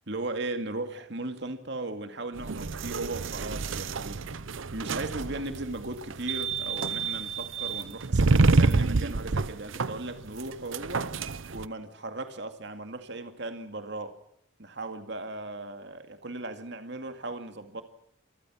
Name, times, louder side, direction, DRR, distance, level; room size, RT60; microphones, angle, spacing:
voice 1, 0.1-4.4 4.7-14.2 14.6-17.8, right 2 dB, 60° right, 2.3 m, -37 dB
sound 1, 2.4-11.6, right 3 dB, 75° right, 0.8 m, -28 dB
26.0 x 14.5 x 7.3 m
head